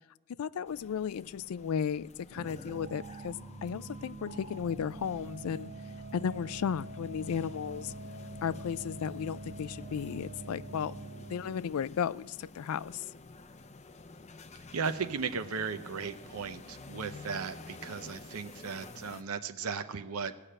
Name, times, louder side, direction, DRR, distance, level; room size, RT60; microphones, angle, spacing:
voice 1, 0.4-5.7 6.1-7.9 8.4-10.9 11.3-13.1, left 7 dB, 75° left, 20 dB, 0.3 m, -34 dB
sound 1, 0.6-19.2, left 3 dB, 30° left, 0.6 m, -51 dB
sound 2, 2.4-11.6, right 2 dB, 40° right, 1.5 m, -45 dB
voice 2, 14.7-20.3, right 5 dB, 75° right, 9 dB, 0.6 m, -36 dB
16.5 x 6.7 x 8.7 m, 1.1 s
head